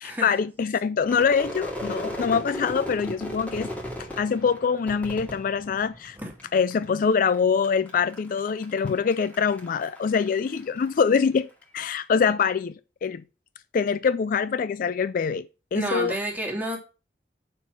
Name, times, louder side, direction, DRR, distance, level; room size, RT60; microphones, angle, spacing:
voice 1, 0.0-3.7 4.2-6.2 6.5-11.5 11.7-12.7 13.0-13.2 13.7-15.5 15.7-16.1, left 6 dB, 50° left, 0.3 m, -24 dB
Crowd / Fireworks, 1.0-6.4 6.7-7.4 7.6-11.2, left 1 dB, 10° left, 2.1 m, -36 dB
voice 2, 15.7-16.8, right 1 dB, 10° right, 2.2 m, -29 dB
6.9 x 4.6 x 6.2 m
head